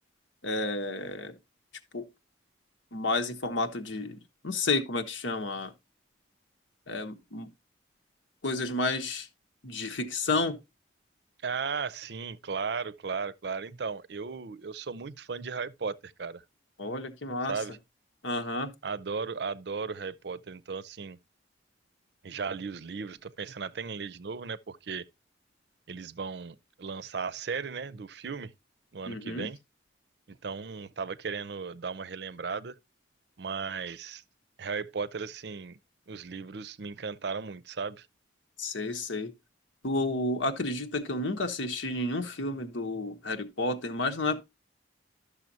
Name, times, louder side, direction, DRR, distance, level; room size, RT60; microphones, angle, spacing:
voice 1, 0.4-1.4 1.9-2.1 2.9-4.2 4.4-5.7 6.9-7.5 8.4-9.3 9.6-10.6 16.8-17.6 18.2-18.7 29.1-29.5 38.6-39.3 39.8-44.4, left 2 dB, 85° left, 1.2 m, -31 dB
voice 2, 11.4-16.4 17.5-17.8 18.8-21.2 22.2-25.0 25.9-28.5 28.9-29.6 30.3-32.7 33.4-34.2 34.6-35.8 36.1-38.1, right 5 dB, 60° right, 0.5 m, -36 dB
12.0 x 6.7 x 2.8 m
head